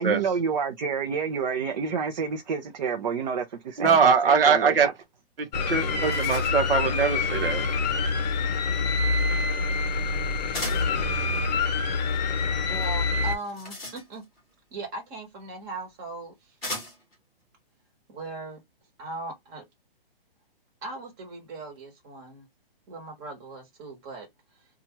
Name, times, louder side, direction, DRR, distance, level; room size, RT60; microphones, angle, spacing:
voice 1, 0.0-4.9, right 6 dB, 50° right, 0.6 m, -29 dB
voice 2, 3.8-4.9 5.7-7.6, right 6 dB, 70° right, 0.9 m, -22 dB
sound 1, 5.4-5.5 5.8-6.8 10.5-11.0 13.2-14.4 15.5-15.6 16.6-17.2, left 1 dB, ahead, 0.3 m, -37 dB
sound 2, 5.5-13.4, left 4 dB, 45° left, 0.7 m, -26 dB
voice 3, 12.7-14.3 14.7-16.6 18.1-18.6 19.0-19.7 20.8-22.5 22.9-24.3 24.6-24.7, right 2 dB, 20° right, 1.1 m, -38 dB
2.8 x 2.4 x 2.9 m
hypercardioid pair, 160°, 30 cm